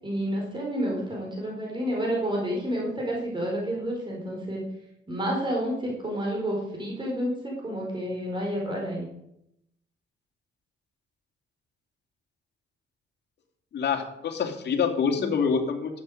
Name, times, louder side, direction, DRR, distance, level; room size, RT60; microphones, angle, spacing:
voice 1, 0.0-4.6 5.1-9.1 15.2-15.3, equal, 25° right, -1 dB, 4.5 m, -30 dB
voice 2, 13.7-16.0, left 6 dB, 60° left, 4 dB, 2.6 m, -26 dB
12.0 x 9.3 x 6.5 m, 0.80 s
cardioid pair, 90°, 20 cm